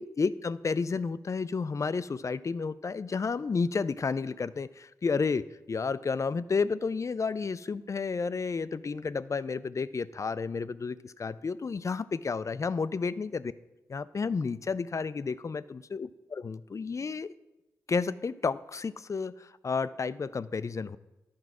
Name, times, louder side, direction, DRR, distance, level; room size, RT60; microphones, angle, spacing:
voice 1, 0.0-13.5 13.9-17.3 17.9-21.0, left 4 dB, 45° left, 15 dB, 0.5 m, -31 dB
11.0 x 4.7 x 6.1 m, 1.0 s
supercardioid pair, 40°, 8 cm